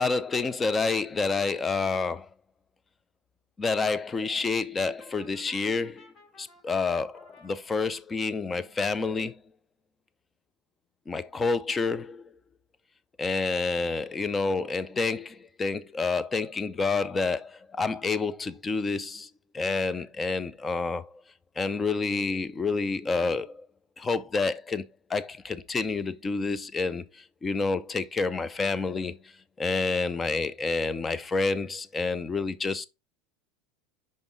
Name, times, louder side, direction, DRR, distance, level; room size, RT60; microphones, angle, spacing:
voice 1, 0.0-2.3 3.6-6.1 6.4-9.4 11.1-12.2 13.2-21.2 21.6-23.7 24.0-29.3 29.6-32.9, left 4 dB, 20° left, 0.5 m, -29 dB
Brass instrument, 4.8-7.5, left 1 dB, 35° left, 2.1 m, -54 dB
5.4 x 5.3 x 3.8 m
supercardioid pair, 125°, 0 cm